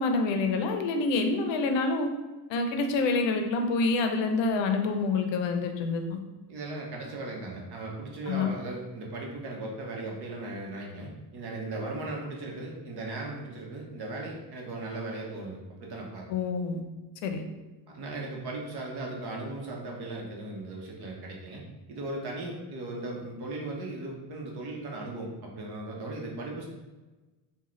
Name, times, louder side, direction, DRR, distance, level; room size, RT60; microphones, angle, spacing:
voice 1, 0.0-2.1 2.5-6.2 8.3-8.5 16.3-16.8 17.2-17.4, left 3 dB, 65° left, 5 dB, 0.6 m, -27 dB
voice 2, 6.5-16.3 17.9-21.6 21.9-26.7, right 2 dB, 55° right, -1 dB, 1.0 m, -37 dB
3.6 x 2.3 x 3.1 m, 1.2 s
supercardioid pair, 85°, 48 cm